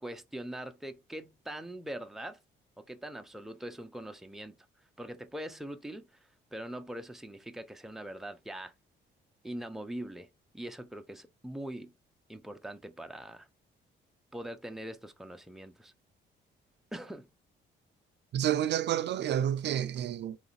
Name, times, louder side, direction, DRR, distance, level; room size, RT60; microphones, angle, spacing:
voice 1, 0.0-2.4 2.8-4.6 5.0-6.1 6.5-8.7 9.4-10.3 10.5-11.9 12.3-13.5 14.3-15.9 16.9-17.3, right 1 dB, ahead, 0.6 m, -42 dB
voice 2, 18.3-20.4, right 10 dB, 60° right, 0.4 m, -29 dB
3.9 x 3.1 x 4.1 m
cardioid pair, 90°, 20 cm